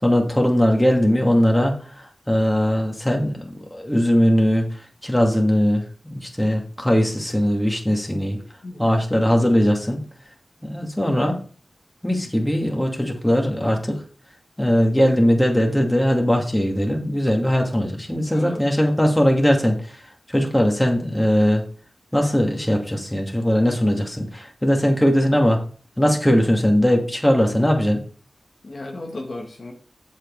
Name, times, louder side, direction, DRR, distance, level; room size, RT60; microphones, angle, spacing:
voice 1, 0.0-1.7 2.3-3.3 3.7-4.7 5.0-8.4 8.8-10.0 10.6-11.4 12.0-14.0 14.6-19.8 20.3-21.6 22.1-25.6 26.0-28.0, equal, 10° left, 1 dB, 2.5 m, -19 dB
voice 2, 8.6-8.9 18.3-18.6 28.6-29.7, left 2 dB, 60° left, 1 dB, 1.8 m, -34 dB
7.8 x 6.6 x 4.8 m, 0.40 s
wide cardioid pair, 60°, 0 cm